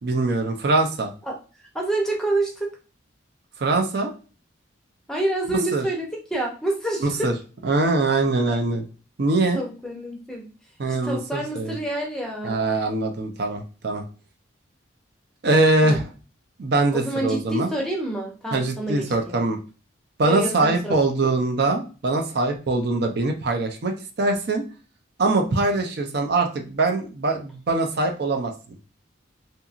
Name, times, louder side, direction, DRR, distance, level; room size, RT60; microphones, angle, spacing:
voice 1, 0.0-1.1 3.6-4.1 5.7-5.8 7.0-7.3 7.6-8.8 9.2-9.6 10.8-11.7 12.4-14.0 15.4-16.0 16.6-17.7 18.5-19.6 20.2-24.6 25.2-28.5, right 2 dB, 55° right, 4 dB, 0.5 m, -22 dB
voice 2, 1.7-2.7 5.1-7.4 9.5-10.5 10.9-12.7 15.8-16.0 16.9-19.5 20.2-21.0, right 1 dB, 5° left, 0 dB, 0.6 m, -28 dB
2.8 x 2.6 x 2.4 m, 0.35 s
head